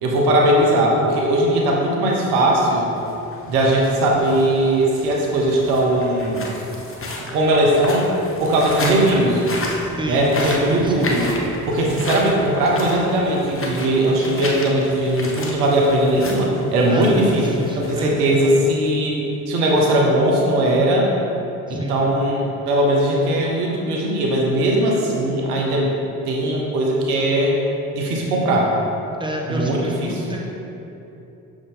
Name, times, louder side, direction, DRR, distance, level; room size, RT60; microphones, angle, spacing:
voice 1, 0.0-2.9 3.5-6.4 7.3-8.1 8.4-9.4 10.1-11.3 11.7-17.4 17.8-19.2 19.5-21.1 21.7-25.9 26.3-27.6 27.9-28.7 29.5-30.2, right 1 dB, 80° right, -2 dB, 0.9 m, -19 dB
sound 1, 2.9-18.6, left 2 dB, 30° left, 1.1 m, -32 dB
voice 2, 10.0-11.2 16.9-18.1 21.7-22.0 29.2-30.5, equal, 10° right, -1 dB, 1.1 m, -29 dB
6.5 x 5.0 x 3.7 m, 2.9 s
hypercardioid pair, 50°, 45 cm